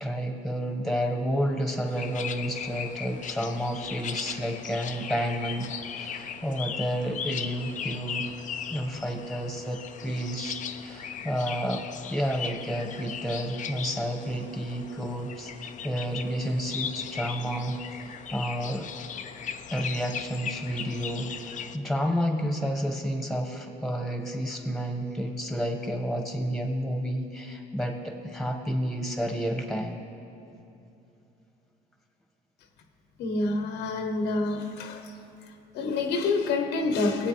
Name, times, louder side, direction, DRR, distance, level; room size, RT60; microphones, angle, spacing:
voice 1, 0.0-8.3 8.7-10.6 10.8-11.8 12.1-18.9 19.7-30.0, equal, ahead, 3 dB, 1.5 m, -30 dB
sound 1, 1.9-21.8, left 7 dB, 50° left, 0.6 m, -38 dB
voice 2, 33.2-35.1 35.7-37.3, left 3 dB, 85° left, 5 dB, 1.2 m, -27 dB
23.5 x 8.6 x 3.4 m, 2.9 s
cardioid pair, 110°, 17 cm